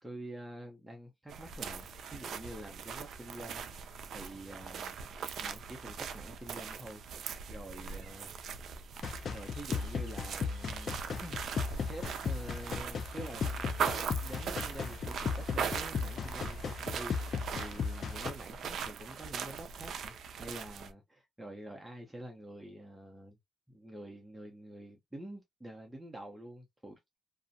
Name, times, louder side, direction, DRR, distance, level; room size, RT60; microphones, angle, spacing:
voice 1, 0.0-5.0 5.4-8.4 8.9-11.4 11.8-23.4 23.7-27.2, right 1 dB, 10° right, 0.6 m, -47 dB
sound 1, 1.3-20.9, right 6 dB, 65° right, 0.3 m, -40 dB
sound 2, 9.0-18.3, left 5 dB, 50° left, 0.5 m, -36 dB
2.5 x 2.0 x 2.5 m
cardioid pair, 90°, 0 cm